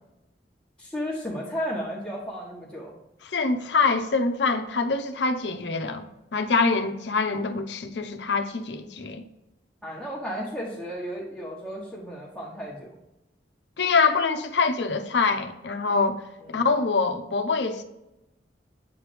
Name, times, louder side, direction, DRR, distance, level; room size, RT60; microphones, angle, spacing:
voice 1, 0.8-2.9 9.8-12.9 16.4-16.6, equal, 5° left, 1.1 m, -34 dB
voice 2, 3.2-6.0 6.3-9.2 13.8-16.2 16.5-17.8, left 4 dB, 75° left, 0.7 m, -24 dB
8.5 x 3.2 x 3.4 m
head